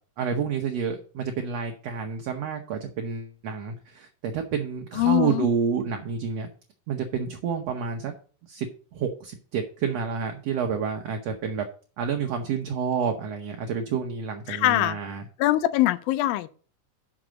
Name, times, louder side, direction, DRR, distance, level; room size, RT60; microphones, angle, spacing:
voice 1, 0.2-6.5 6.9-8.1 8.4-11.6 12.0-15.3, right 6 dB, 65° right, 1.7 m, -29 dB
voice 2, 5.0-5.5 14.5-15.0 15.4-16.5, left 16 dB, 85° left, 2.3 m, -22 dB
6.5 x 6.0 x 7.4 m
omnidirectional pair, 4.0 m